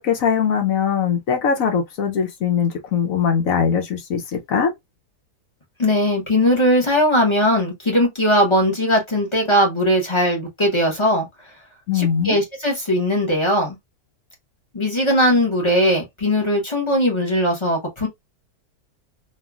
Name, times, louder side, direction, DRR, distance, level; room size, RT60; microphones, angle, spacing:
voice 1, 0.0-4.2 4.5-4.7 11.9-12.4, left 7 dB, 65° left, 1.0 m, -21 dB
voice 2, 5.8-11.3 11.9-13.8 14.7-18.1, equal, 25° left, 0.8 m, -19 dB
3.2 x 2.4 x 2.3 m
omnidirectional pair, 1.6 m